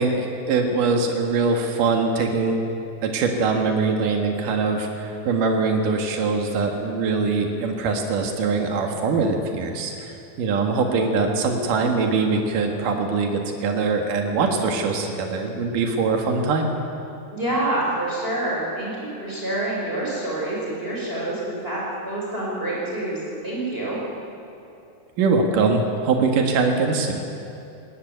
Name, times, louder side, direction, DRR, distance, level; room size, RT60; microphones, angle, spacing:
voice 1, 0.0-2.6 3.0-16.7 25.2-27.2, right 4 dB, 85° right, 3 dB, 3.3 m, -22 dB
voice 2, 17.3-24.0, right 1 dB, 15° right, -4 dB, 5.4 m, -27 dB
19.5 x 19.0 x 9.2 m, 2.8 s
omnidirectional pair, 3.7 m